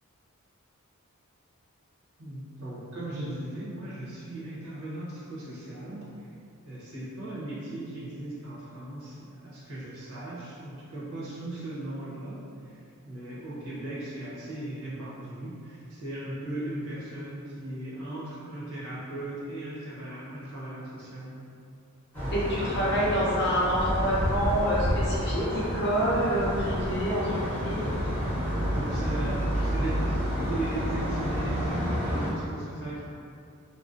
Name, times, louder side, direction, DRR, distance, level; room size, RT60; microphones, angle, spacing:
voice 1, 2.2-6.3 6.6-12.4 12.6-12.8 13.1-21.4 22.1-23.0 28.7-30.1 30.4-33.0, right 1 dB, 70° right, -8 dB, 0.7 m, -38 dB
sound 1, 22.1-32.3, equal, 10° left, 0.7 m, -29 dB
voice 2, 22.3-27.8, equal, 50° left, -6 dB, 0.6 m, -27 dB
2.5 x 2.0 x 2.4 m, 2.4 s
head